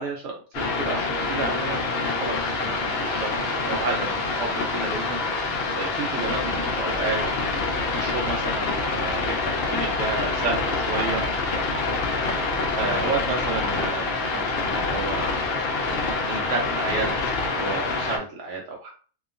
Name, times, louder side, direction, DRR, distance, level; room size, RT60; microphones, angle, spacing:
voice 1, 0.0-11.6 12.8-15.3 16.3-18.9, right 3 dB, 70° right, 0 dB, 0.7 m, -31 dB
sound 1, 0.5-18.2, left 3 dB, 80° left, 0.5 m, -26 dB
2.8 x 2.3 x 2.4 m, 0.40 s
omnidirectional pair, 1.7 m